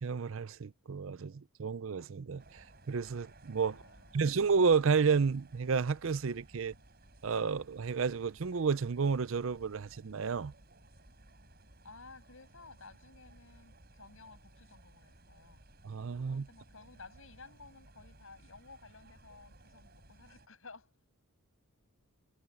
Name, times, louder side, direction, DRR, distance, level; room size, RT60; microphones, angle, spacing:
voice 1, 0.0-3.8 4.1-6.7 7.2-10.5 15.8-16.5, right 5 dB, 60° right, 0.5 m, -31 dB
sound 1, 2.4-20.5, right 1 dB, 45° right, 6.4 m, -59 dB
voice 2, 3.7-4.3 11.8-15.7 16.2-21.1, left 3 dB, 65° left, 6.9 m, -55 dB
head